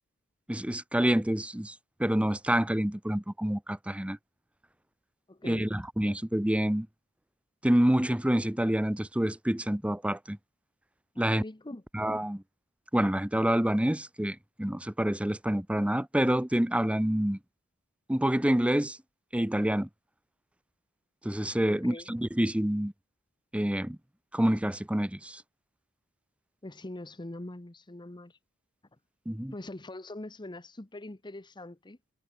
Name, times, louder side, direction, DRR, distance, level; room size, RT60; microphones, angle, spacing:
voice 1, 0.5-4.2 5.4-6.9 7.6-10.4 11.2-11.4 11.9-12.4 12.9-17.4 18.1-19.0 19.3-19.9 21.2-22.9 23.5-24.0 24.3-25.4 29.3-29.5, right 1 dB, 5° right, 0.7 m, -27 dB
voice 2, 5.3-5.7 11.1-11.8 21.6-22.1 26.6-28.4 29.5-32.0, left 1 dB, 20° left, 1.0 m, -43 dB
head